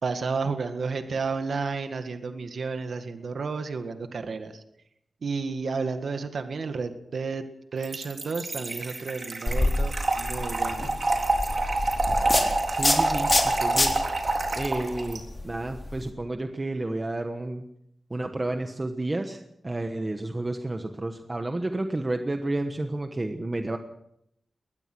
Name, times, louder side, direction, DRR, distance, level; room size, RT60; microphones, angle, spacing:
voice 1, 0.0-4.6 5.2-7.4 7.7-10.9, right 4 dB, 70° right, 7 dB, 1.9 m, -31 dB
Trickle dribble / Fill (with liquid), 7.8-15.2, right 2 dB, 40° right, 4.0 m, -27 dB
sound 1, 9.5-16.1, left 2 dB, 25° left, 4.0 m, -28 dB
voice 2, 12.7-14.0 14.5-17.6 18.1-23.8, right 2 dB, 25° right, 6 dB, 1.3 m, -31 dB
22.0 x 19.5 x 6.2 m, 0.79 s
wide cardioid pair, 130°, 0 cm